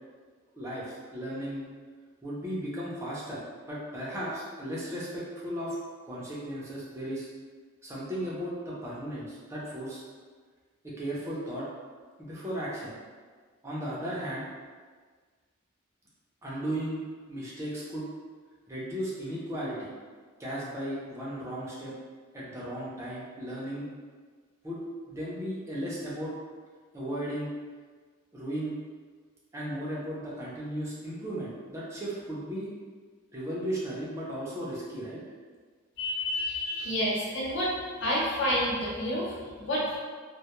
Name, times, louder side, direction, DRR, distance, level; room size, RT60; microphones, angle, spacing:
voice 1, 0.6-1.6 2.2-5.8 6.1-7.3 7.8-10.0 10.8-11.7 12.2-12.9 13.6-14.4 16.4-17.0 17.3-18.1 18.7-19.9 20.4-21.9 22.3-23.9 24.6-24.8 25.1-26.3 26.9-27.5 28.3-28.8 29.5-32.7 33.3-35.2, equal, 15° right, -7 dB, 0.5 m, -35 dB
voice 2, 36.0-37.7 38.0-40.0, left 1 dB, 60° left, -6 dB, 0.7 m, -29 dB
2.2 x 2.0 x 2.9 m, 1.5 s
head